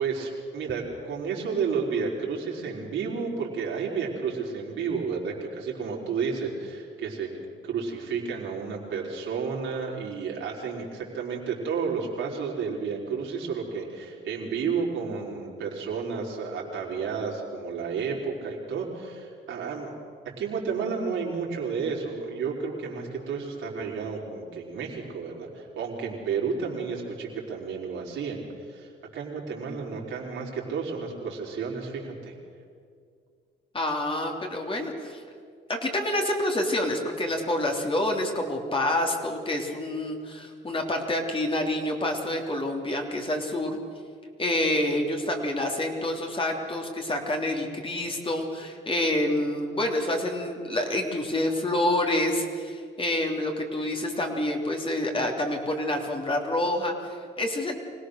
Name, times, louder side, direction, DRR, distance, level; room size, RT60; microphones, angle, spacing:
voice 1, 0.0-7.3 7.6-19.9 20.2-32.3, right 5 dB, 75° right, -2 dB, 4.5 m, -31 dB
voice 2, 33.7-35.2 35.7-43.8 44.4-57.7, left 1 dB, 25° left, 2 dB, 3.2 m, -27 dB
25.5 x 17.5 x 6.6 m, 2.2 s
cardioid pair, 90°, 20 cm